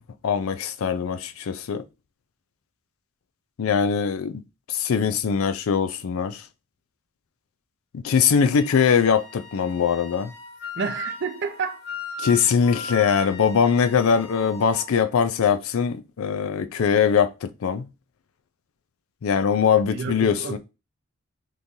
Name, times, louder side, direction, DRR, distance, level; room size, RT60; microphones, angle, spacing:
voice 1, 0.2-1.8 3.6-4.4 4.7-6.4 7.9-10.3 12.2-17.9 19.2-20.6, left 6 dB, 75° left, 0.4 m, -22 dB
Wind instrument woodwind instrument, 8.5-14.9, left 2 dB, 50° left, 1.2 m, -38 dB
voice 2, 10.8-11.8 19.9-20.6, right 5 dB, 55° right, 0.5 m, -30 dB
3.7 x 3.0 x 2.6 m
head